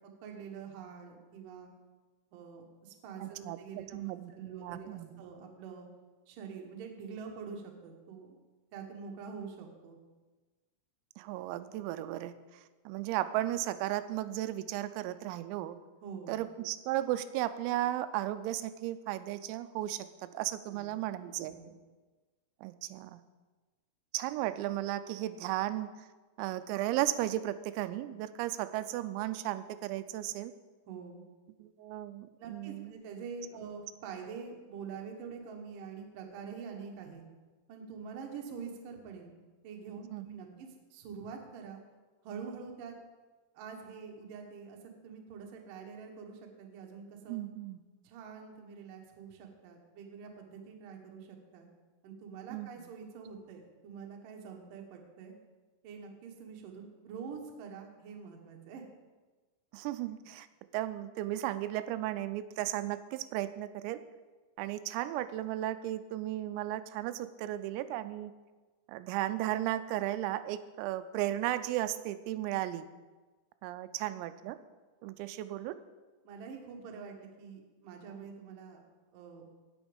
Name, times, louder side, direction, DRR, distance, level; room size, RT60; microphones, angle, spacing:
voice 1, 0.2-1.7 2.3-4.0 4.3-5.9 6.3-8.4 8.7-10.0 16.0-16.4 20.7-20.9 21.4-21.7 30.9-31.3 32.4-37.2 37.7-39.4 39.6-41.8 42.2-42.9 43.5-44.8 45.0-47.4 48.0-51.7 52.0-55.3 55.8-58.8 76.2-78.8 79.1-79.4, right 6 dB, 70° right, 1 dB, 2.1 m, -46 dB
voice 2, 3.2-5.2 11.2-15.8 16.3-21.5 22.6-23.2 24.1-25.9 26.4-30.5 31.6-32.9 40.1-40.3 47.3-47.8 52.5-52.7 59.7-60.5 60.7-64.0 64.6-68.3 68.9-72.9 73.6-74.6 75.0-75.8, right 14 dB, 90° right, 12 dB, 3.3 m, -35 dB
17.5 x 6.2 x 5.1 m, 1.3 s
omnidirectional pair, 6.0 m